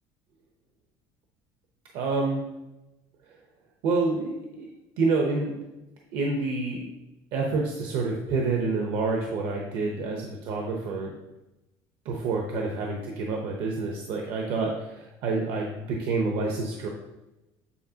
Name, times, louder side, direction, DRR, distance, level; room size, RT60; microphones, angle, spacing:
voice 1, 1.9-2.4 3.8-4.7 5.0-5.6 6.1-6.9 7.3-11.1 12.0-16.9, right 3 dB, 65° right, 1 dB, 0.8 m, -28 dB
8.5 x 4.1 x 2.8 m, 0.99 s
cardioid pair, 160°, 10 cm